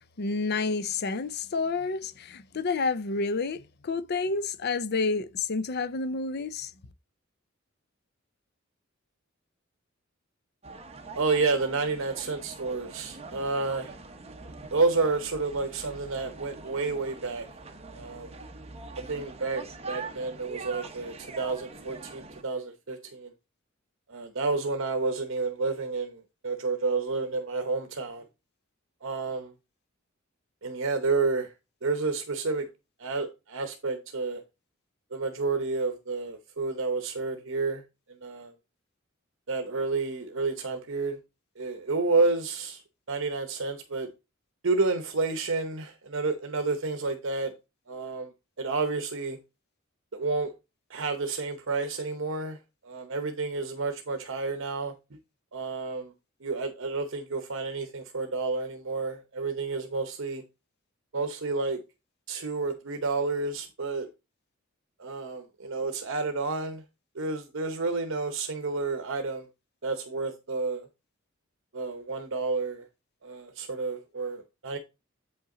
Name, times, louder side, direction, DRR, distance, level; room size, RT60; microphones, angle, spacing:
voice 1, 0.2-6.7, left 4 dB, 50° left, 0.5 m, -29 dB
sound 1, 10.6-22.4, right 3 dB, 30° right, 0.9 m, -44 dB
voice 2, 11.1-13.9 14.7-17.5 17.9-18.3 19.0-23.3 24.1-28.2 29.0-29.5 30.6-31.5 31.8-32.7 33.0-34.4 35.1-37.8 38.2-38.5 39.5-41.2 41.6-42.8 43.1-44.1 44.6-47.5 47.9-48.3 48.6-49.4 50.1-50.5 50.9-52.6 52.8-54.9 55.5-56.1 56.4-60.4 61.1-61.8 62.3-64.1 65.0-66.8 67.1-69.5 69.8-70.9 71.7-72.9 73.2-74.8, right 3 dB, 65° right, 0.9 m, -30 dB
8.0 x 5.6 x 3.8 m
head